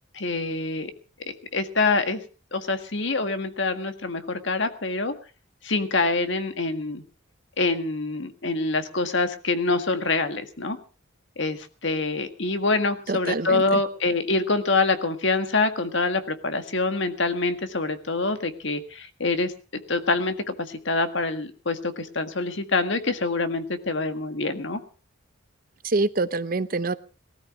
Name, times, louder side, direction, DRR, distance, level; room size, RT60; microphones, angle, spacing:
voice 1, 0.1-0.9 1.3-2.2 2.5-5.1 5.6-7.0 7.6-10.8 11.4-19.5 19.9-24.8, left 3 dB, 60° left, 8 dB, 1.7 m, -25 dB
voice 2, 13.1-13.8 25.8-27.0, right 3 dB, 45° right, 14 dB, 0.7 m, -26 dB
19.0 x 13.0 x 4.8 m, 0.37 s
head